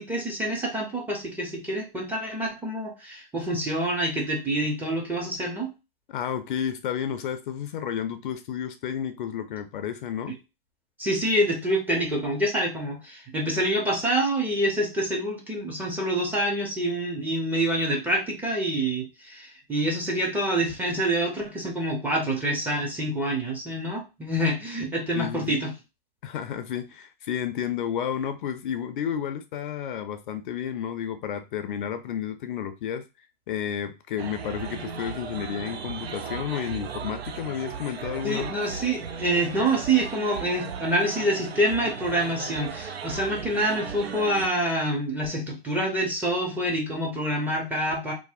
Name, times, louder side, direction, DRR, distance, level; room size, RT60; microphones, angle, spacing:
voice 1, 0.0-5.7 11.0-25.7 38.2-48.1, right 1 dB, 5° right, 0.5 m, -26 dB
voice 2, 6.1-10.4 25.2-25.6 26.2-33.0 33.5-38.6, left 9 dB, 55° left, 0.4 m, -31 dB
sound 1, 34.2-44.5, right 6 dB, 85° right, 0.5 m, -36 dB
2.7 x 2.0 x 2.4 m
hypercardioid pair, 120°, 30 cm